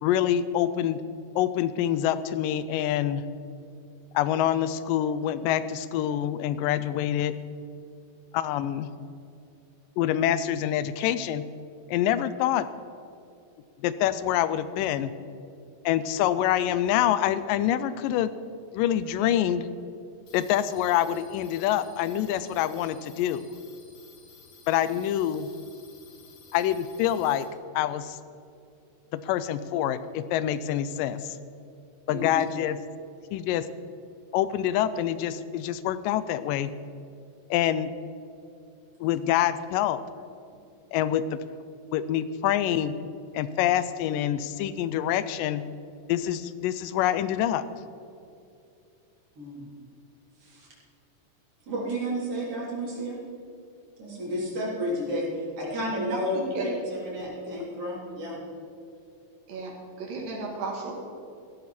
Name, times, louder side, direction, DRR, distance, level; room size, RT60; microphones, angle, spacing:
voice 1, 0.0-1.0 1.4-3.2 4.1-7.3 8.3-8.9 10.0-11.4 11.9-12.7 13.8-15.1 15.9-18.3 18.7-19.7 20.3-23.4 24.7-25.5 26.5-27.5 27.8-28.2 29.1-31.4 32.1-32.8 33.3-33.7 34.3-36.7 37.5-37.9 39.0-40.0 40.9-41.4 41.9-42.9 43.3-45.6 46.1-47.6, left 11 dB, 85° left, 14 dB, 2.2 m, -26 dB
sound 1, 20.3-27.4, left 5 dB, 60° left, 2.7 m, -54 dB
voice 2, 49.4-49.7 50.4-50.7 51.7-53.2 54.0-58.4, equal, 45° right, -6 dB, 4.5 m, -31 dB
voice 3, 56.3-56.7 59.5-60.9, right 3 dB, 90° right, -1 dB, 3.9 m, -34 dB
15.5 x 12.5 x 4.3 m, 2.6 s
omnidirectional pair, 3.9 m